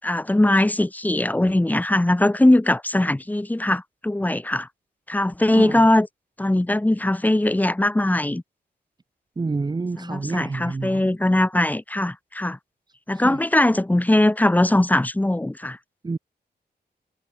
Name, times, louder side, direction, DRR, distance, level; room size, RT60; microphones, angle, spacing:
voice 1, 0.0-4.7 5.1-6.1 6.4-8.4 10.0-12.6 13.1-15.8, left 1 dB, 10° left, 6.8 m, -20 dB
voice 2, 9.4-11.0 13.2-13.4 16.0-16.2, right 3 dB, 25° right, 2.4 m, -28 dB
wide cardioid pair, 175°, 17 cm